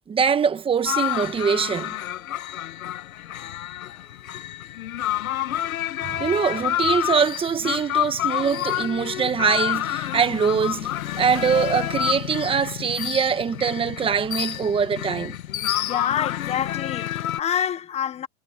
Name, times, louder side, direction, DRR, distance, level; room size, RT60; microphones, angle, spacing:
voice 1, 0.1-2.0 6.0-10.9 11.2-15.3, right 6 dB, 15° right, 1.2 m, -23 dB
sound 1, 0.8-17.4, left 12 dB, 90° left, 1.8 m, -28 dB
voice 2, 15.9-18.3, left 9 dB, 15° left, 0.9 m, -27 dB
supercardioid pair, 145°, 41 cm